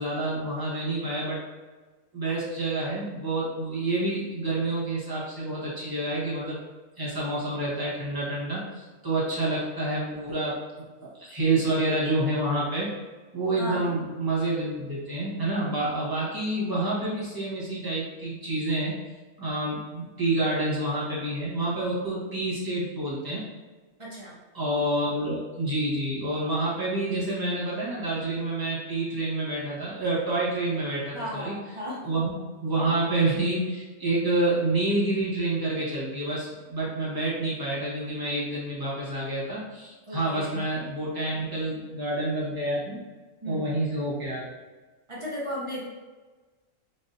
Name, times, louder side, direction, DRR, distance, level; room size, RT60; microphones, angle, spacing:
voice 1, 0.0-1.4 2.1-6.6 7.0-10.5 11.2-12.9 13.3-19.0 19.4-23.5 24.5-31.5 32.0-32.3 32.6-43.0 43.5-44.4, right 2 dB, 20° right, -7 dB, 0.9 m, -28 dB
voice 2, 13.6-13.9 24.0-24.4 31.1-32.0 40.1-40.7 43.4-43.7 45.1-45.8, equal, 35° right, -6 dB, 0.5 m, -35 dB
3.9 x 2.6 x 2.6 m, 1.3 s
omnidirectional pair, 1.4 m